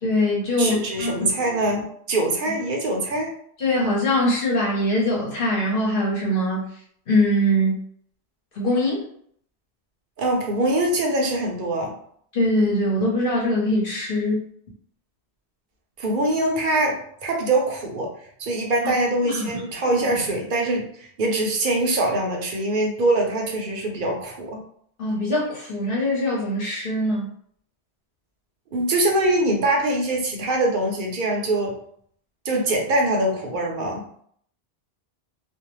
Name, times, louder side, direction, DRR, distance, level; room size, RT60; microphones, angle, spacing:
voice 1, 0.0-1.3 3.6-6.6 7.1-7.7 8.5-9.0 12.3-14.5 19.2-19.5 25.0-27.3, left 1 dB, 55° left, -4 dB, 1.0 m, -22 dB
voice 2, 0.6-3.3 10.2-11.9 16.0-18.1 18.4-24.6 28.7-31.7 32.4-34.1, right 1 dB, 55° right, 0 dB, 0.7 m, -23 dB
2.5 x 2.0 x 3.0 m, 0.64 s
omnidirectional pair, 1.1 m